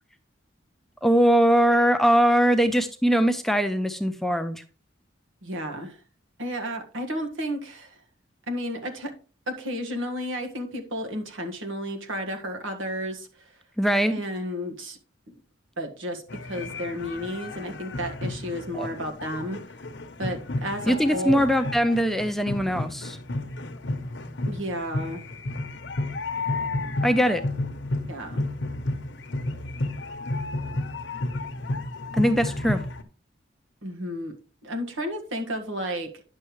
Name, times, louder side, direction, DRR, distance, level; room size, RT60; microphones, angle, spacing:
voice 1, 1.0-4.6 13.8-14.1 18.7-18.9 20.9-23.2 27.0-27.4 32.1-32.8, equal, ahead, 0.5 m, -21 dB
voice 2, 5.4-6.0 6.4-8.0 8.5-9.1 9.5-13.5 14.1-15.0 15.8-19.6 20.2-21.4 24.4-25.2 28.1-28.4 33.8-34.3 34.6-36.2, equal, 85° right, 1.6 m, -32 dB
sound 1, 16.3-33.0, left 2 dB, 65° left, 0.9 m, -32 dB
9.9 x 6.7 x 3.1 m
head